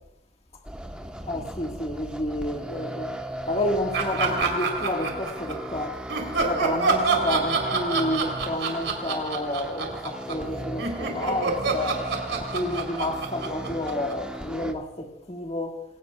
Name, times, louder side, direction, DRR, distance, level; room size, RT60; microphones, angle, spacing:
sound 1, 0.6-14.7, equal, 5° right, 1.2 m, -37 dB
voice 1, 1.3-3.2 3.5-6.0 6.3-15.8, left 1 dB, 30° left, 1.8 m, -30 dB
Laughter, 3.9-5.7 6.1-10.5 10.8-14.4, right 4 dB, 75° right, 3.9 m, -27 dB
28.5 x 17.0 x 2.4 m
head